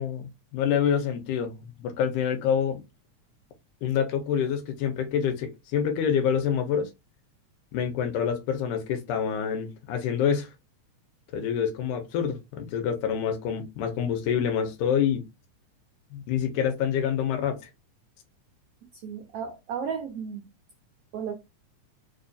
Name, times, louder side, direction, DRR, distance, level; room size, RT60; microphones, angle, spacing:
voice 1, 0.0-2.8 3.8-6.9 7.7-10.5 11.3-15.3 16.1-17.6, left 8 dB, 90° left, 2.2 m, -27 dB
voice 2, 19.0-20.5 21.1-21.3, right 7 dB, 80° right, 1.3 m, -34 dB
4.8 x 2.6 x 2.3 m
omnidirectional pair, 3.6 m